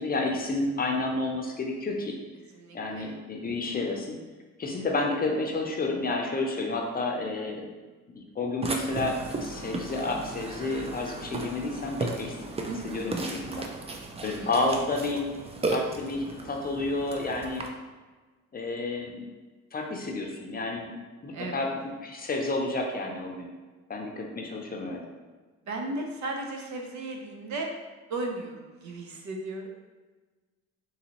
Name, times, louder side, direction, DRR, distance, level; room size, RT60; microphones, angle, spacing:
voice 1, 0.0-2.1 2.7-4.2 4.6-7.6 8.1-12.4 12.8-13.7 14.2-15.2 15.7-17.7 18.5-19.2 19.7-20.9 21.2-21.7 22.0-23.5 23.9-25.0, left 2 dB, 30° left, 1 dB, 0.6 m, -30 dB
voice 2, 2.5-3.1 4.7-4.9 12.6-13.1 14.2-14.6 21.3-21.6 25.6-27.7 28.1-29.7, right 2 dB, 70° right, 1 dB, 0.7 m, -36 dB
Burping eructation, 8.6-17.7, right 2 dB, 20° right, 0.4 m, -35 dB
3.9 x 2.7 x 2.9 m, 1.3 s
cardioid pair, 90°, 30 cm